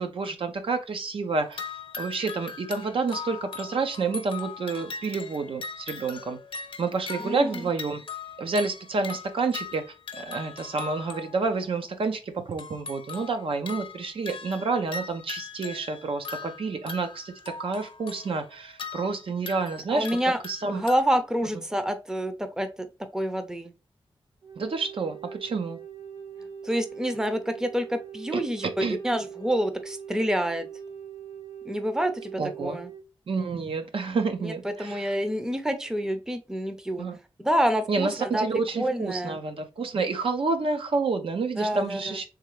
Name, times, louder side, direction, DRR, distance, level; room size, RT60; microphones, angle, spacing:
voice 1, 0.0-1.6 2.0-6.4 6.8-8.0 8.4-9.8 10.2-17.3 17.6-20.1 20.4-20.8 24.6-25.8 28.3-28.4 28.8-29.0 32.4-32.8 33.3-35.0 37.0-37.2 37.9-42.2, right 4 dB, 70° right, 0.7 m, -29 dB
sound 1, 1.4-11.6 12.5-21.0, left 5 dB, 65° left, 0.7 m, -40 dB
voice 2, 7.2-7.6 19.9-20.4 20.7-22.9 23.1-23.7 26.6-30.7 31.6-32.9 34.4-37.1 37.4-39.4 41.6-42.2, equal, 5° right, 0.6 m, -28 dB
Wind instrument woodwind instrument, 24.4-33.0, right 7 dB, 85° right, 2.3 m, -42 dB
3.6 x 3.2 x 3.1 m
wide cardioid pair, 100°, 10 cm